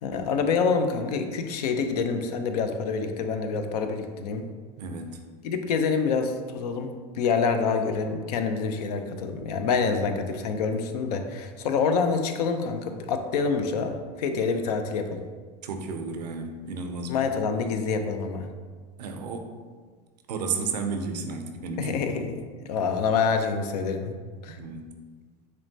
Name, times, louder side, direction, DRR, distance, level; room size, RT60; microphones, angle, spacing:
voice 1, 0.0-4.5 5.4-15.2 17.1-18.5 21.8-24.1 24.4-24.6, left 5 dB, 75° left, 7 dB, 0.5 m, -27 dB
voice 2, 4.8-5.2 15.6-17.2 19.0-19.5 20.3-22.1 24.6-24.8, right 4 dB, 90° right, 5 dB, 0.5 m, -32 dB
6.0 x 2.2 x 2.7 m, 1.6 s
hypercardioid pair, 85°, 20 cm